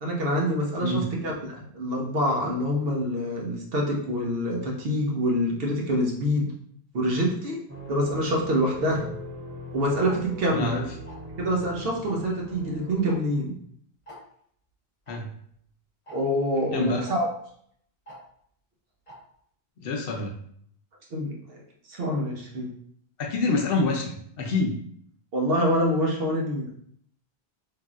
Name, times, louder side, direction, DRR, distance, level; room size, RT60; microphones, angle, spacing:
voice 1, 0.0-6.5 6.9-7.6 7.9-9.1 9.7-10.7 11.4-13.6 16.1-17.3 21.1-21.6 21.9-22.7 25.3-26.7, equal, 70° right, -1 dB, 0.9 m, -26 dB
sound 1, 7.7-13.2, left 1 dB, 20° right, 0.3 m, -40 dB
Tick-tock, 10.1-10.2 11.1-11.3 12.1-12.3 13.1-13.2 13.4-13.5 14.1-14.2 15.1-15.2 16.1-16.2 17.1-17.2 18.1-18.2 19.1-19.2, equal, 35° left, 0.8 m, -45 dB
voice 2, 10.5-10.9 15.1-15.3 16.7-17.1 19.8-20.3 23.2-24.8, left 3 dB, 70° left, 2 dB, 0.8 m, -27 dB
3.2 x 2.7 x 2.4 m, 0.66 s
omnidirectional pair, 1.1 m